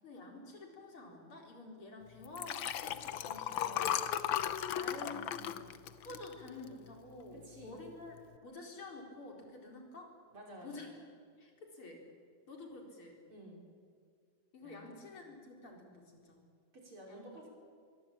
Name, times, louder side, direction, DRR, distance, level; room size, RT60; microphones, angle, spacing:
voice 1, 0.0-3.9 4.7-5.3 5.9-8.1 8.4-10.1 10.5-11.1 11.4-12.1 12.5-13.2 14.5-16.4 17.1-17.3, left 2 dB, 45° left, 1 dB, 4.9 m, -49 dB
Liquid, 2.2-6.9 7.4-7.6 7.9-8.0, left 10 dB, 70° left, 1.1 m, -36 dB
voice 2, 3.6-4.1 4.9-5.7 7.4-7.8 10.3-10.8 13.3-13.6 14.6-15.0 16.7-17.5, right 1 dB, 45° right, -1 dB, 6.0 m, -52 dB
23.5 x 22.5 x 8.8 m, 2.1 s
omnidirectional pair, 3.3 m